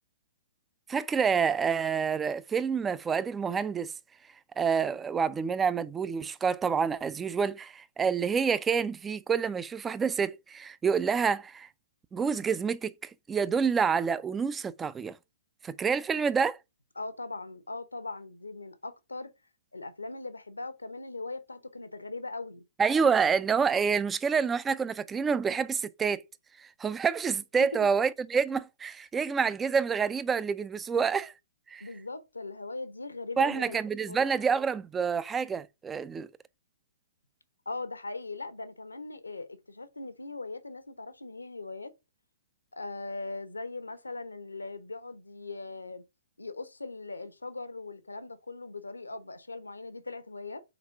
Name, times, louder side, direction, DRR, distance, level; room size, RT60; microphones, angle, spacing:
voice 1, 0.9-3.9 4.6-11.7 12.1-15.2 15.6-16.6 22.8-26.2 26.6-31.3 31.7-31.8 33.4-36.3, right 6 dB, 15° right, 0.3 m, -28 dB
voice 2, 17.0-19.3 19.7-22.6 27.6-27.9 31.8-33.8 34.0-34.2 37.7-41.9 42.7-46.0 46.4-50.6, left 3 dB, 80° left, 0.8 m, -40 dB
4.2 x 4.0 x 5.5 m
figure-of-eight pair, 120°, 0 cm